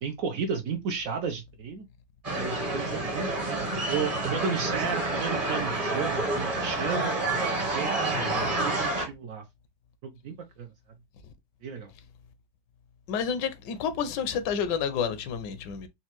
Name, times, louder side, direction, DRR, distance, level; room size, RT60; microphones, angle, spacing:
voice 1, 0.0-1.9 2.4-7.1 7.7-9.4 10.0-10.7 11.6-11.9, right 6 dB, 70° right, 0.8 m, -33 dB
sound 1, 2.2-9.1, right 2 dB, 30° right, 0.8 m, -29 dB
voice 2, 8.1-8.5 13.1-15.9, left 7 dB, 85° left, 1.2 m, -30 dB
4.1 x 2.3 x 2.8 m
omnidirectional pair, 1.8 m